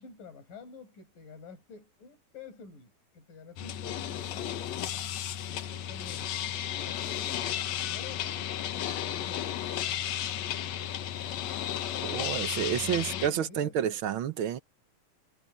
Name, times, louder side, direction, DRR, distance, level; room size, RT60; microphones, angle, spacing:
voice 1, 0.0-4.7 5.5-9.7 12.8-13.8, left 4 dB, 80° left, 8.6 m, -49 dB
sound 1, 3.6-13.3, left 11 dB, 65° left, 2.0 m, -34 dB
voice 2, 12.0-14.6, right 9 dB, 65° right, 1.2 m, -30 dB
omnidirectional pair, 3.7 m